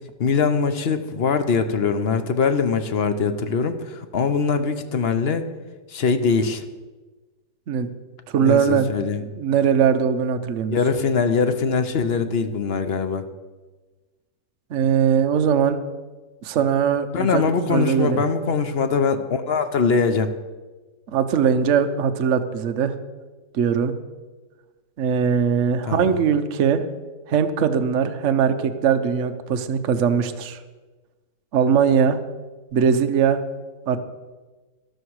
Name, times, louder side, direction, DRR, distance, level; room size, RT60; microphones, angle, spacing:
voice 1, 0.2-5.5 5.9-6.6 8.4-9.2 10.6-13.2 17.1-20.3 25.8-26.2, left 5 dB, 50° left, 9 dB, 0.8 m, -22 dB
voice 2, 8.3-8.9 9.4-10.8 14.7-15.8 16.4-17.4 17.7-18.2 21.1-22.9 23.5-23.9 25.0-26.9 27.3-30.6 31.5-32.2 32.7-33.4 33.9-34.0, right 7 dB, 55° right, 8 dB, 1.0 m, -20 dB
13.0 x 12.0 x 4.8 m, 1.2 s
omnidirectional pair, 1.9 m